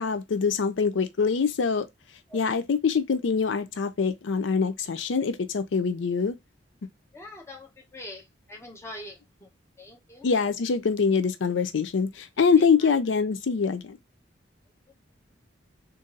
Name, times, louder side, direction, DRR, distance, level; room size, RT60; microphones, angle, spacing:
voice 1, 0.0-1.9 2.3-6.4 10.2-14.0, left 5 dB, 80° left, 0.5 m, -24 dB
voice 2, 7.1-9.5 9.8-10.3 12.6-12.9, left 1 dB, 15° left, 1.0 m, -44 dB
3.7 x 2.6 x 3.9 m
head